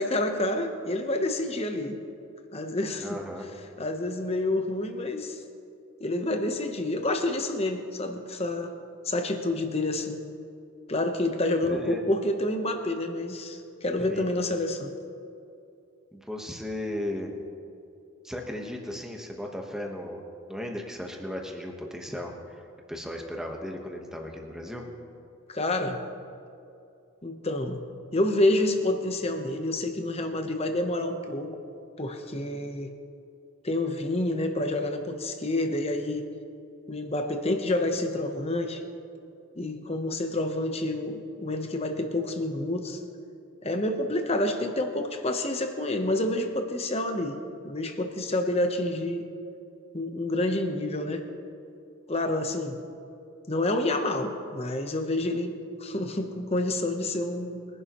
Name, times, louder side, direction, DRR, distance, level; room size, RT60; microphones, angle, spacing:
voice 1, 0.0-2.0 2.5-3.2 3.8-5.4 6.0-8.7 9.0-10.2 10.9-14.9 25.5-26.0 27.2-27.8 28.1-31.6 32.0-32.9 33.6-36.3 36.9-38.8 39.6-43.0 43.6-47.4 47.6-49.3 49.9-51.3 52.1-52.8 53.5-55.5 55.8-57.7, left 1 dB, 30° left, 5 dB, 0.9 m, -28 dB
voice 2, 3.0-3.5 11.7-12.0 14.1-14.3 16.1-17.3 18.2-20.2 20.5-24.8, left 1 dB, 5° right, 1 dB, 1.1 m, -36 dB
22.0 x 11.0 x 3.0 m, 2.6 s
head